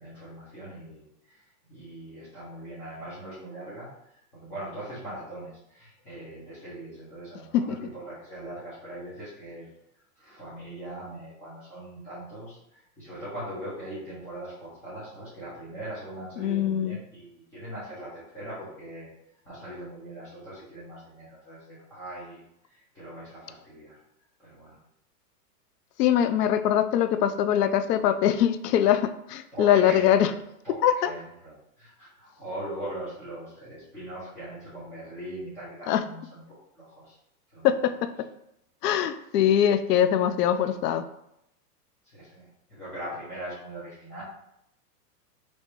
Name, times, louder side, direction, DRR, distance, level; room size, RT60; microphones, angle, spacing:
voice 1, 0.0-9.7 10.2-19.1 19.4-24.0 24.4-24.8 29.5-30.3 30.6-36.4 36.7-37.2 37.5-37.7 42.0-44.2, right 1 dB, 5° left, -13 dB, 0.5 m, -41 dB
voice 2, 16.4-17.0 26.0-30.3 30.8-31.1 35.9-36.0 37.6-37.9 38.8-41.1, left 10 dB, 80° left, 10 dB, 0.5 m, -22 dB
3.1 x 2.9 x 4.5 m, 0.79 s
supercardioid pair, 155°, 47 cm